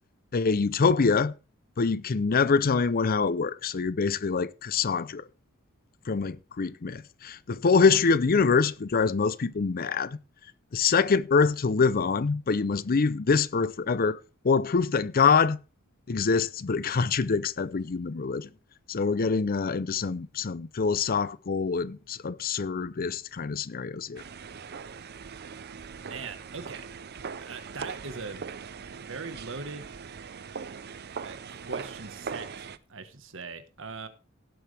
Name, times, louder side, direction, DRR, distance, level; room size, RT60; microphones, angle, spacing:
voice 1, 0.3-1.3 1.8-5.2 6.1-10.2 10.7-14.2 14.4-15.6 16.1-18.5 18.9-24.2, left 5 dB, 45° left, 0.6 m, -25 dB
sound 1, 24.2-32.8, right 6 dB, 50° right, 0.6 m, -40 dB
voice 2, 26.0-26.9 27.4-28.4 29.0-29.9 31.2-34.1, right 4 dB, 65° right, 1.4 m, -40 dB
17.5 x 7.9 x 3.4 m
head